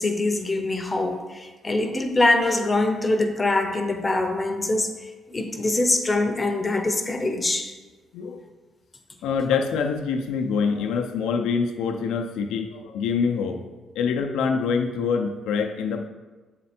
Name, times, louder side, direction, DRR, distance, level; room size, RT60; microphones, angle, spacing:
voice 1, 0.0-7.7, left 2 dB, 20° left, 6 dB, 0.7 m, -24 dB
voice 2, 9.2-13.6 14.0-16.1, left 5 dB, 90° left, 4 dB, 0.5 m, -25 dB
7.4 x 4.2 x 4.3 m, 1.3 s
cardioid pair, 90°, 0 cm